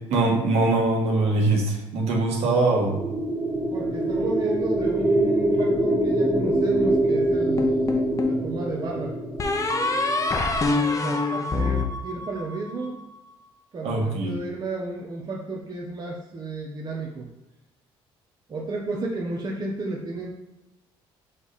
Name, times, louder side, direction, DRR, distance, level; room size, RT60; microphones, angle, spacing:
voice 1, 0.1-3.0 13.8-14.3, right 2 dB, 70° right, -2 dB, 1.8 m, -22 dB
sound 1, 2.6-10.7, right 1 dB, 15° right, 1.6 m, -24 dB
voice 2, 3.7-9.1 10.9-13.0 13.7-17.3 18.5-20.3, right 2 dB, 40° right, -2 dB, 1.1 m, -32 dB
sound 2, 7.6-8.4 9.4-12.7, left 3 dB, 30° left, 0.9 m, -25 dB
6.9 x 3.5 x 4.3 m, 0.94 s
cardioid pair, 95°, 11 cm